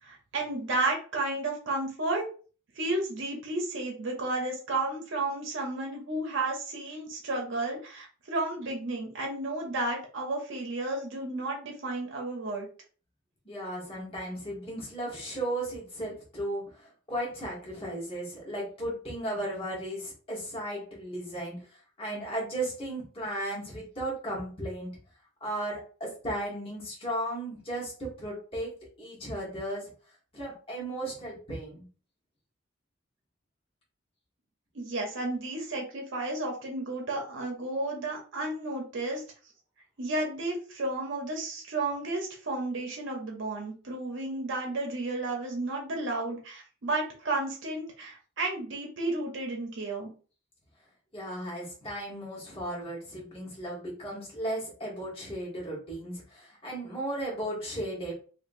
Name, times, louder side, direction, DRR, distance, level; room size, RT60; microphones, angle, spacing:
voice 1, 0.0-2.3 2.8-12.7 34.7-39.2 40.0-50.1, right 2 dB, 65° right, 0 dB, 0.8 m, -32 dB
voice 2, 13.4-24.9 25.4-29.9 30.3-31.8 51.1-58.1, right 1 dB, 30° left, -5 dB, 1.3 m, -35 dB
2.9 x 2.7 x 2.6 m, 0.39 s
head